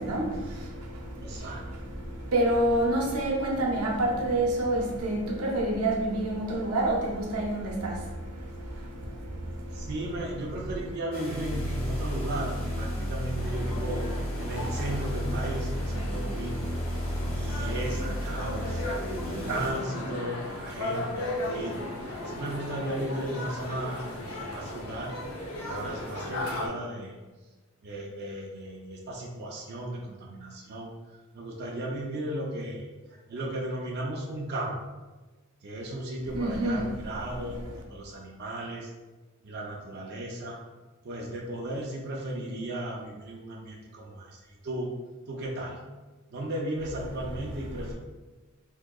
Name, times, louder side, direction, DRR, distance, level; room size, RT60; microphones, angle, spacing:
voice 1, 0.0-9.9 36.3-36.9, right 1 dB, 90° right, -2 dB, 0.7 m, -28 dB
voice 2, 1.2-1.6 9.7-14.0 14.4-16.7 17.3-18.8 19.2-21.9 22.2-25.1 25.6-27.1 27.8-34.8 35.6-37.6 37.9-38.9 39.4-40.6 41.0-44.9 45.3-45.8 46.3-47.9, right 1 dB, 50° right, -2 dB, 0.4 m, -35 dB
sound 1, 11.1-19.7, equal, 25° left, 1.0 m, -32 dB
sound 2, 13.4-26.7, left 1 dB, 80° left, 0.6 m, -36 dB
3.6 x 2.7 x 2.2 m, 1.2 s
head